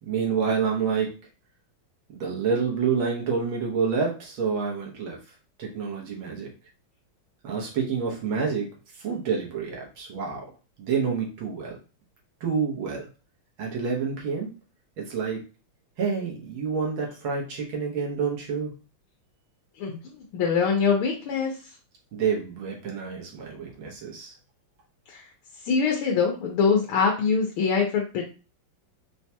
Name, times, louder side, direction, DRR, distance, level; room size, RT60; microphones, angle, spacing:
voice 1, 0.0-1.1 2.1-5.2 5.6-6.5 7.4-8.7 9.0-10.5 10.8-11.8 12.4-13.1 13.6-14.5 15.0-15.4 16.0-18.7 22.1-24.3, right 6 dB, 80° right, -2 dB, 1.8 m, -28 dB
voice 2, 20.3-21.5 25.7-28.2, left 5 dB, 85° left, 1 dB, 1.6 m, -23 dB
4.5 x 2.2 x 2.7 m, 0.33 s
omnidirectional pair, 2.3 m